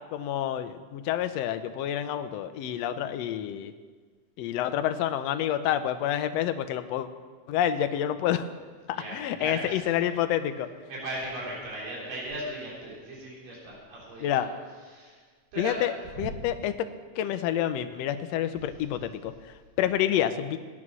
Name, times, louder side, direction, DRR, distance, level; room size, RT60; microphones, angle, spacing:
voice 1, 0.1-3.7 4.4-7.1 7.5-8.5 8.9-10.7 14.2-14.5 15.6-16.7 17.1-20.6, left 11 dB, 75° left, 9 dB, 1.6 m, -28 dB
voice 2, 8.9-9.7 10.9-14.5 14.9-15.2 15.5-15.9, right 1 dB, 85° right, -5 dB, 5.4 m, -37 dB
17.0 x 9.7 x 6.2 m, 1.5 s
omnidirectional pair, 3.7 m